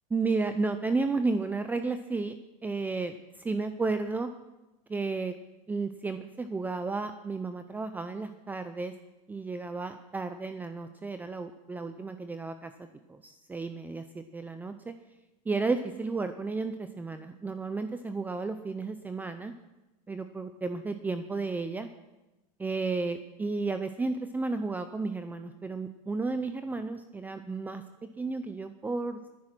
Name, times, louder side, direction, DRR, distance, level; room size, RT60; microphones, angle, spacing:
voice 1, 0.1-2.3 2.6-4.3 4.9-5.4 5.7-8.9 9.3-14.9 15.5-19.5 20.1-21.9 22.6-27.8 28.2-29.2, right 3 dB, 10° right, 9 dB, 0.6 m, -33 dB
22.0 x 10.5 x 6.1 m, 1.0 s
supercardioid pair, 145°, 20 cm